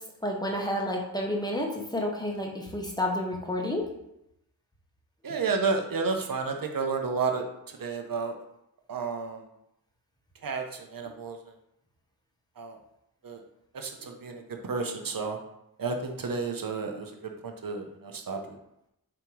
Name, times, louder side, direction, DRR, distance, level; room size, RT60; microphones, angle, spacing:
voice 1, 0.2-3.8, left 1 dB, 10° left, -1 dB, 1.0 m, -30 dB
voice 2, 5.2-8.4 8.9-9.4 10.4-11.5 12.6-12.8 13.2-13.4 13.7-15.4 15.8-18.6, right 4 dB, 60° right, 3 dB, 0.8 m, -31 dB
7.3 x 3.0 x 4.7 m, 0.83 s
wide cardioid pair, 130°, 38 cm